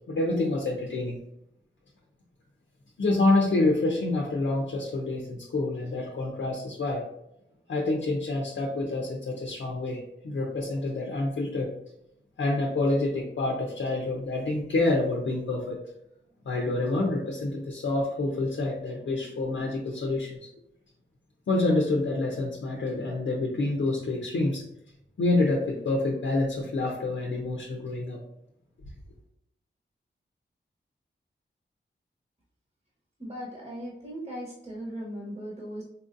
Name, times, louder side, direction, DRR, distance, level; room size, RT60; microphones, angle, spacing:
voice 1, 0.1-1.2 3.0-7.0 7.7-11.7 12.4-15.8 16.4-20.5 21.5-24.7 25.2-28.2, left 2 dB, 80° left, 0 dB, 0.6 m, -27 dB
voice 2, 33.2-35.8, equal, 35° right, -4 dB, 1.0 m, -38 dB
4.1 x 2.5 x 2.6 m, 0.80 s
wide cardioid pair, 75°, 20 cm